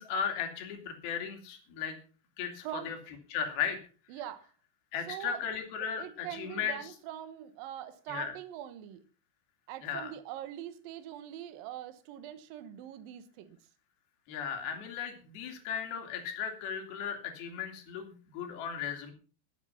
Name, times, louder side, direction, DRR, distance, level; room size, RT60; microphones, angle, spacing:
voice 1, 0.0-2.0 2.4-3.0 3.3-3.8 4.9-6.8 8.1-8.3 9.8-10.1 14.3-19.1, left 7 dB, 55° left, 4.0 m, -36 dB
voice 2, 2.6-3.0 4.1-4.5 5.1-5.4 6.0-9.0 9.7-13.6, right 11 dB, 75° right, 2.1 m, -43 dB
20.5 x 7.4 x 5.7 m
omnidirectional pair, 5.7 m